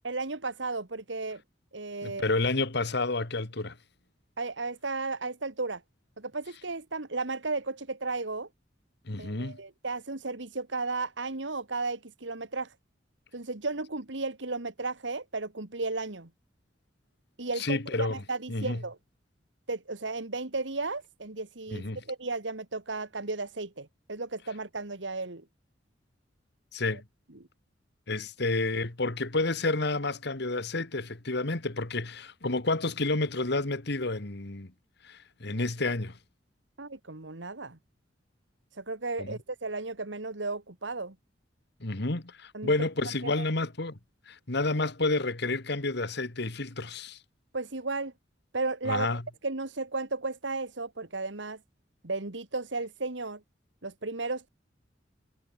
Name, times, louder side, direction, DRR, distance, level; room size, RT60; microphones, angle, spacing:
voice 1, 0.0-1.4 1.7-2.4 4.4-5.8 6.2-8.5 9.2-12.7 13.3-16.3 17.4-19.0 19.7-25.4 26.9-27.0 36.8-37.8 38.7-41.2 42.5-42.7 43.2-43.4 47.5-48.1 48.5-49.1 49.4-51.6 52.0-53.4 53.8-54.5, right 3 dB, 75° right, 2.0 m, -34 dB
voice 2, 2.0-3.8 9.1-9.6 17.6-18.2 18.5-18.8 21.7-22.0 26.7-27.0 28.1-34.7 35.0-36.2 39.2-39.4 41.8-44.0 44.3-47.2 48.9-49.2, left 2 dB, 65° left, 1.9 m, -30 dB
head